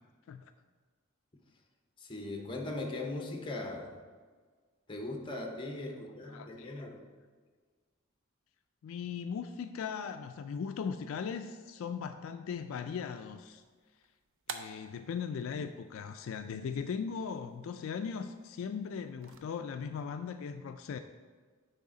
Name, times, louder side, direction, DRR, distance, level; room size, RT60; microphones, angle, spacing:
voice 1, 2.0-4.0 4.9-7.0, left 2 dB, 25° left, 0.8 m, -39 dB
voice 2, 6.3-6.8 8.8-13.6 14.5-21.0, left 6 dB, 70° left, 0.3 m, -38 dB
sound 1, 13.0-19.4, right 5 dB, 70° right, 0.5 m, -51 dB
9.4 x 3.5 x 3.7 m
head